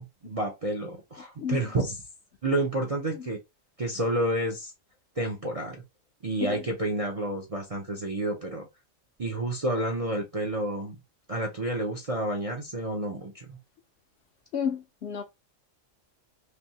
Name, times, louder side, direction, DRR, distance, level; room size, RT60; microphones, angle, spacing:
voice 1, 0.0-2.0 2.4-3.4 3.8-4.7 5.2-5.8 6.2-8.7 9.2-11.0 11.3-13.6, right 1 dB, 40° right, 0.5 m, -30 dB
voice 2, 14.5-15.2, left 7 dB, 60° left, 0.8 m, -31 dB
3.4 x 2.7 x 2.7 m
omnidirectional pair, 1.4 m